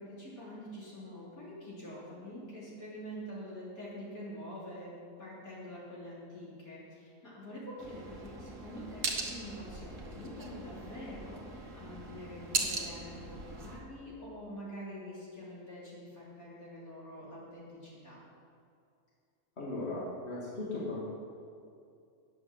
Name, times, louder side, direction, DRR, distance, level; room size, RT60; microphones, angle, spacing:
voice 1, 0.0-18.2, equal, 75° left, -7 dB, 3.6 m, -46 dB
sound 1, 7.8-13.8, right 3 dB, 60° right, 1.6 m, -39 dB
voice 2, 19.6-21.0, left 2 dB, 45° left, -7 dB, 2.6 m, -37 dB
9.5 x 7.4 x 7.4 m, 2.4 s
omnidirectional pair, 1.5 m